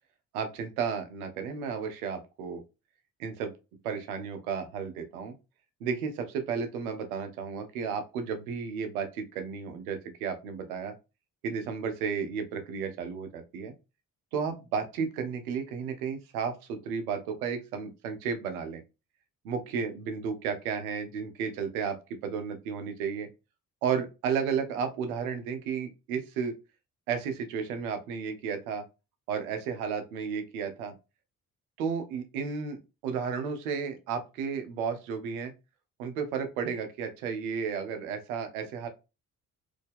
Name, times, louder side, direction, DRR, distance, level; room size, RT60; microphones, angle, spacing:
voice 1, 0.3-2.6 3.2-3.5 3.8-5.3 5.8-10.9 11.4-13.7 14.3-18.8 19.4-22.0 22.2-23.3 23.8-26.5 27.1-28.8 29.3-30.9 31.8-32.8 33.0-35.5 36.0-38.9, right 6 dB, 75° right, 7 dB, 0.8 m, -33 dB
4.2 x 2.8 x 3.5 m, 0.28 s
figure-of-eight pair, 45°, 44 cm